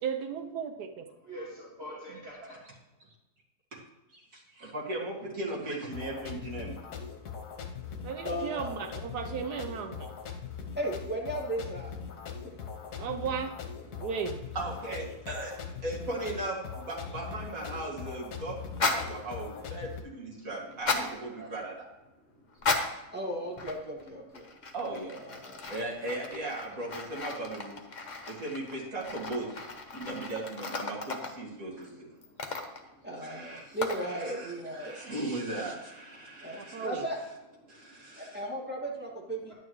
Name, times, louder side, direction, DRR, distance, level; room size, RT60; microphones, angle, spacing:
voice 1, 0.0-1.1 8.0-10.1 13.0-13.5 13.8-14.4 36.6-37.0, right 7 dB, 80° right, 6 dB, 1.3 m, -35 dB
voice 2, 1.2-2.6 20.5-21.5, equal, 40° right, -7 dB, 2.4 m, -45 dB
voice 3, 4.1-6.7 14.5-21.7 24.7-25.2 25.7-27.8 28.3-29.6 29.9-31.9 33.2-36.9 37.7-38.4, right 2 dB, 60° right, -4 dB, 2.7 m, -37 dB
sound 1, 5.9-20.0, left 6 dB, 75° left, 1.5 m, -41 dB
voice 4, 8.2-8.8 10.8-11.9 12.4-12.6 23.1-24.5 25.2-25.7 33.0-35.0 36.4-37.2 38.2-39.5, right 1 dB, 5° right, -4 dB, 2.0 m, -36 dB
sound 2, 18.7-19.1 20.7-21.1 22.5-23.0 23.6-24.1 24.3-31.4 32.2-32.9 33.8-34.1, left 3 dB, 40° left, 0.7 m, -35 dB
11.0 x 9.1 x 3.2 m, 0.98 s
omnidirectional pair, 1.7 m